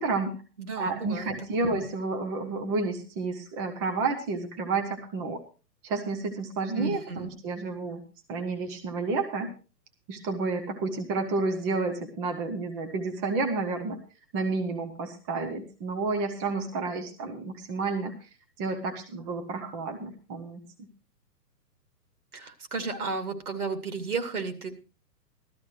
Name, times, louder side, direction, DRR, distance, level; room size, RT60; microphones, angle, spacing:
voice 1, 0.0-0.4 0.8-5.4 5.8-8.0 8.3-9.5 10.1-14.0 14.3-18.3 18.6-20.6, right 3 dB, 15° right, 4 dB, 0.7 m, -30 dB
voice 2, 0.6-1.3 1.6-1.7 6.8-7.3 22.3-24.7, right 4 dB, 60° right, 7 dB, 2.6 m, -33 dB
16.0 x 13.0 x 3.1 m, 0.34 s
figure-of-eight pair, 120°, 49 cm